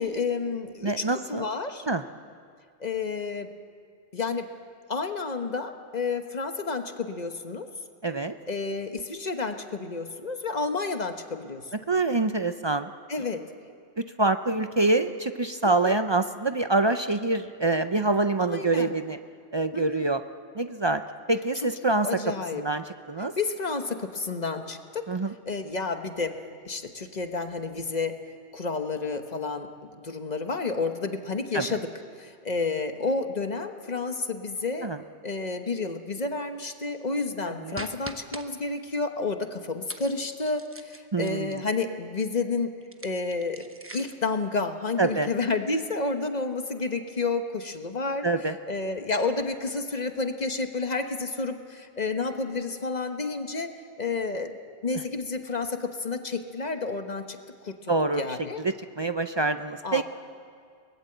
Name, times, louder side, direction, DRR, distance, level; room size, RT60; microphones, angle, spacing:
voice 1, 0.0-1.9 2.8-3.5 4.1-4.5 4.9-7.7 8.5-11.7 13.1-13.5 15.6-16.0 18.4-18.9 19.7-20.1 22.0-22.6 23.4-25.1 25.5-26.4 26.6-28.2 28.5-31.9 32.2-34.9 35.2-42.7 43.0-43.7 43.9-48.3 48.7-53.7 54.0-54.5 54.8-57.4 57.6-58.6 59.8-60.0, left 3 dB, 35° left, 7 dB, 1.2 m, -30 dB
voice 2, 0.8-1.4 1.9-2.0 8.0-8.3 11.9-12.9 14.2-19.2 19.5-20.2 20.6-21.0 21.3-22.1 22.5-23.3 25.1-25.3 31.5-31.7 34.8-35.0 37.5-37.8 41.1-41.6 45.0-45.3 48.2-48.6 57.9-58.3 58.6-60.0, right 2 dB, 40° right, 9 dB, 0.4 m, -25 dB
sound 1, 37.8-38.5 39.9-41.8 42.8-44.3, right 1 dB, 10° right, 0.9 m, -43 dB
22.5 x 19.5 x 7.9 m, 2.2 s
omnidirectional pair, 1.2 m